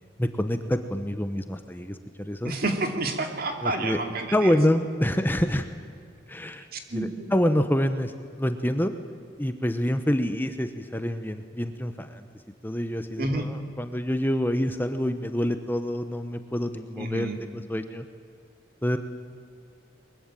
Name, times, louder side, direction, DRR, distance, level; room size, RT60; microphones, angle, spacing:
voice 1, 0.2-2.5 3.6-4.0 4.3-5.7 6.3-8.1 8.4-8.9 9.4-12.3 12.6-18.0 18.8-19.0, equal, 10° left, 8 dB, 0.9 m, -27 dB
voice 2, 2.4-4.5 6.7-7.3 13.2-13.5 17.0-17.4, right 2 dB, 50° right, 5 dB, 2.6 m, -29 dB
23.0 x 22.0 x 9.0 m, 2.3 s
head